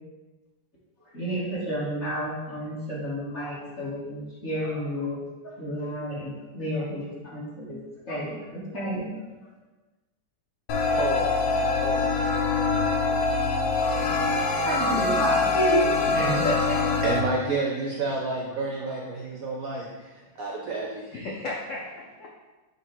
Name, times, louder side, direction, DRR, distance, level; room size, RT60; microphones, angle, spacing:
voice 1, 1.1-5.2 5.6-7.8 8.1-9.1 14.0-16.5, equal, 35° left, -7 dB, 1.9 m, -31 dB
sound 1, 10.7-17.2, left 3 dB, 75° left, 1.5 m, -24 dB
voice 2, 10.9-13.2 16.4-16.7 21.1-22.3, left 2 dB, 60° left, -3 dB, 0.8 m, -34 dB
voice 3, 17.0-21.1, right 3 dB, 70° right, -1 dB, 0.8 m, -30 dB
6.6 x 3.1 x 4.5 m, 1.2 s
omnidirectional pair, 2.2 m